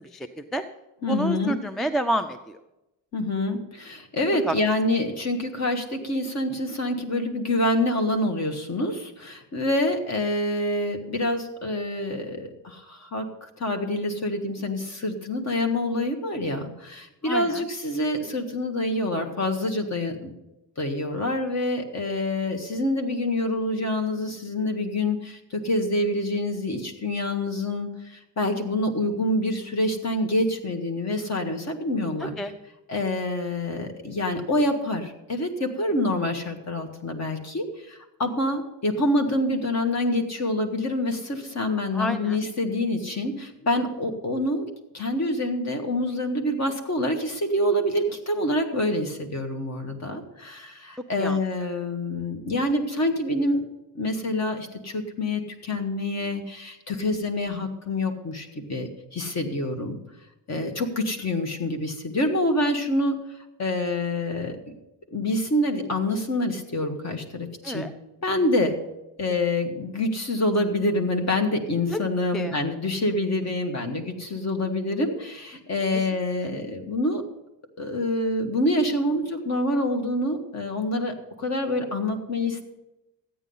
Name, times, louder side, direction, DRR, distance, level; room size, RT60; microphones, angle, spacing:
voice 1, 0.1-0.6 1.1-2.6 4.5-4.6 17.2-17.6 32.2-32.5 41.9-42.4 51.2-51.4 67.6-67.9 71.9-72.0 72.3-72.5, right 1 dB, ahead, 10 dB, 0.3 m, -29 dB
voice 2, 1.0-1.6 3.1-20.3 20.8-32.4 32.9-44.7 44.9-53.6 54.0-60.0 60.5-63.2 63.6-64.6 65.1-67.8 68.2-68.8 69.2-77.2 77.8-82.6, left 1 dB, 40° left, 5 dB, 1.6 m, -26 dB
13.5 x 9.2 x 5.5 m, 0.95 s
wide cardioid pair, 165°, 42 cm